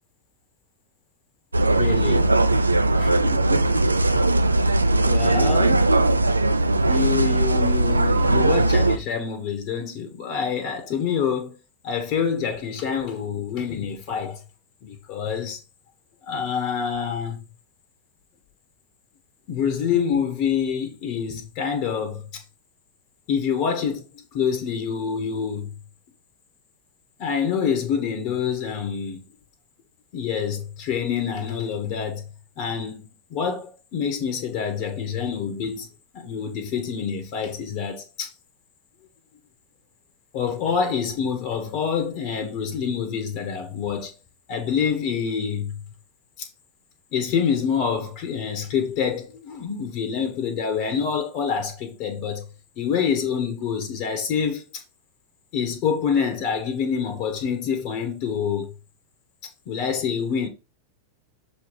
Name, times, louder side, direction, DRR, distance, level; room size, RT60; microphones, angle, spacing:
sound 1, 1.5-9.0, right 2 dB, 80° right, 0.5 m, -19 dB
voice 1, 1.7-2.3 3.0-3.7 5.0-5.9 6.9-11.6 11.8-14.4 14.8-15.6 16.2-17.4 19.5-22.4 23.3-25.7 27.2-29.2 30.1-32.3 32.6-35.9 36.1-38.3 40.3-44.1 44.5-45.8 46.4-46.5 47.1-52.4 52.8-54.8 55.5-58.7 59.7-60.5, left 7 dB, 45° left, 1.4 m, -26 dB
6.8 x 3.3 x 4.8 m
figure-of-eight pair, 90°, 0 cm